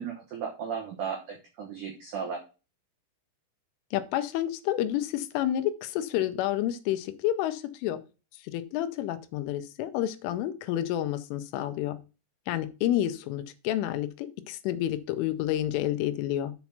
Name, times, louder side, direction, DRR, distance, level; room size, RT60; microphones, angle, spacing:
voice 1, 0.0-2.4, right 6 dB, 85° right, 0 dB, 1.8 m, -35 dB
voice 2, 3.9-8.0 8.4-12.0 12.5-16.5, left 12 dB, 80° left, 9 dB, 3.1 m, -29 dB
7.1 x 5.3 x 5.9 m, 0.32 s
omnidirectional pair, 5.8 m